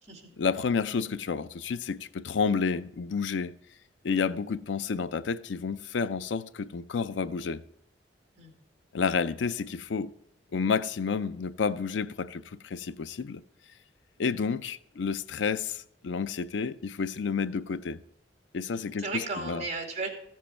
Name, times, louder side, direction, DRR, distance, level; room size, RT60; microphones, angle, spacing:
voice 1, 0.4-3.5 4.0-7.6 8.9-10.1 10.5-13.4 14.2-18.0 18.5-19.1 19.5-19.6, left 5 dB, 90° left, 0.5 m, -30 dB
voice 2, 18.7-20.1, right 3 dB, 40° right, 2.3 m, -35 dB
14.5 x 7.5 x 4.4 m
head